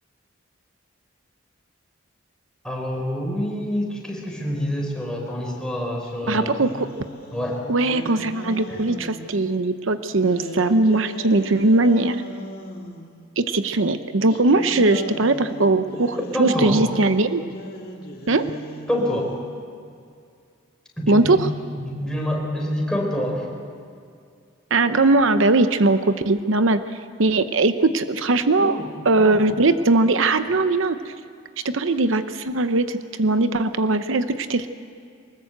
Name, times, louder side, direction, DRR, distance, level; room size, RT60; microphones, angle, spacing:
voice 1, 2.6-6.6 7.3-7.7 8.7-8.8 16.3-16.8 18.9-19.3 21.0-21.4 21.8-23.5 28.6-28.9 29.1-29.4, left 1 dB, 5° left, -1 dB, 4.0 m, -26 dB
sound 1, 6.0-9.3 10.2-13.1 14.3-19.5, left 1 dB, 45° left, 2.3 m, -37 dB
voice 2, 6.3-6.9 7.7-12.2 13.4-17.4 18.3-18.5 21.1-21.5 24.7-26.8 27.2-28.8 29.0-31.1 31.6-34.7, right 2 dB, 75° right, 10 dB, 0.8 m, -20 dB
24.0 x 20.5 x 7.9 m, 2.3 s
head